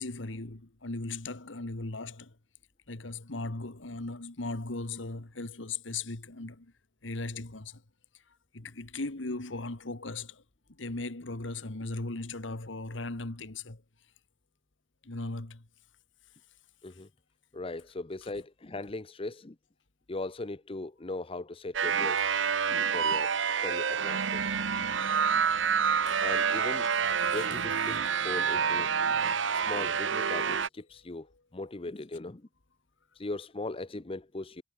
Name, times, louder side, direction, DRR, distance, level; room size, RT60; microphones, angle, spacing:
voice 1, 0.0-2.3 2.9-6.7 7.0-7.8 8.5-10.4 10.8-13.8 15.0-15.6 26.1-26.2 27.2-27.4, left 3 dB, 80° left, 1.7 m, -38 dB
voice 2, 17.5-19.6 20.1-22.3 22.7-23.3 23.6-24.9 26.2-26.9 27.2-29.2 29.5-31.3 31.5-32.5 33.2-34.6, left 2 dB, 30° left, 0.8 m, -39 dB
sound 1, 21.7-30.7, right 6 dB, 80° right, 1.0 m, -28 dB
head